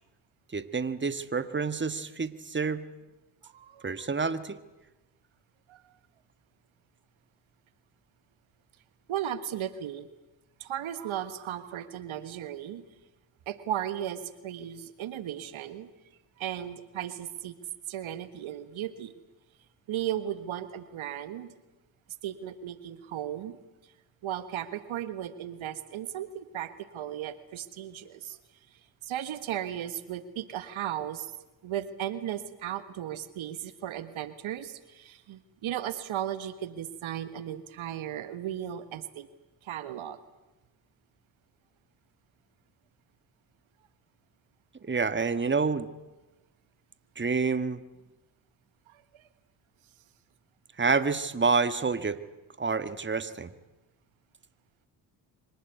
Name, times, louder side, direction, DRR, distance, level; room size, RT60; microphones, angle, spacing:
voice 1, 0.5-2.8 3.8-4.6 44.8-45.9 47.1-47.8 50.8-52.2 52.6-53.5, right 4 dB, 25° right, 12 dB, 1.6 m, -28 dB
voice 2, 3.4-3.9 5.7-5.8 9.1-10.1 10.6-12.8 13.5-15.9 16.4-17.5 17.9-19.1 19.9-21.5 22.2-23.5 24.2-28.4 29.0-31.3 31.6-39.3 39.6-40.2 48.9-49.2, right 11 dB, 70° right, 13 dB, 1.6 m, -36 dB
24.5 x 19.0 x 9.4 m, 1.1 s
supercardioid pair, 55°, 49 cm